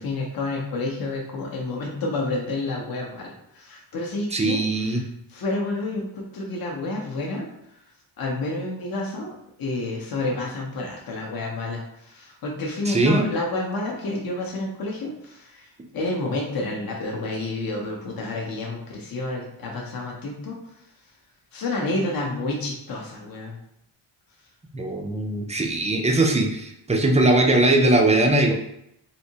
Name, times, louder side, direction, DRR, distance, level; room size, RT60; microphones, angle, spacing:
voice 1, 0.0-7.8 8.2-20.9 21.5-23.6, left 2 dB, 45° left, -1 dB, 0.7 m, -30 dB
voice 2, 4.3-5.0 12.9-13.2 24.7-28.5, right 2 dB, 15° right, 2 dB, 0.3 m, -20 dB
3.3 x 2.7 x 2.7 m, 0.77 s
wide cardioid pair, 140°, 48 cm